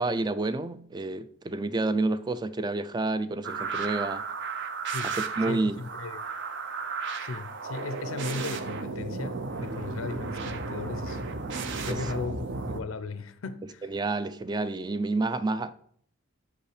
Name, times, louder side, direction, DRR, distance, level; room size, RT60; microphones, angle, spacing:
voice 1, 0.0-4.2 5.0-5.7 11.9-12.0 13.9-15.7, right 2 dB, 20° right, 0.3 m, -29 dB
sound 1, 3.4-12.8, right 4 dB, 60° right, 0.7 m, -34 dB
voice 2, 5.5-6.2 7.1-11.2 11.8-13.9, left 4 dB, 80° left, 0.5 m, -37 dB
6.3 x 5.4 x 4.9 m
head